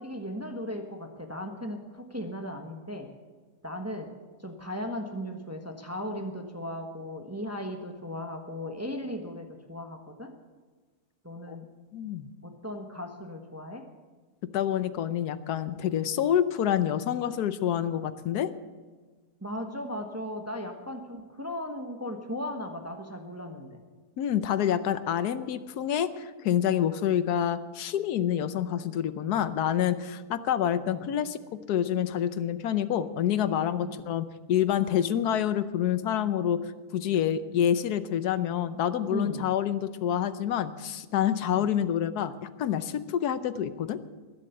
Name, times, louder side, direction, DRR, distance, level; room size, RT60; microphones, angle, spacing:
voice 1, 0.0-3.1 3.6-4.1 4.4-10.3 11.2-11.7 12.4-13.9 19.4-23.8 30.8-31.0 33.8-34.0 39.1-39.4 41.5-41.7, equal, 10° right, 3 dB, 1.2 m, -37 dB
voice 2, 11.9-12.3 14.5-18.5 24.2-44.0, left 10 dB, 90° left, 13 dB, 1.3 m, -27 dB
20.5 x 7.5 x 8.0 m, 1.4 s
omnidirectional pair, 1.6 m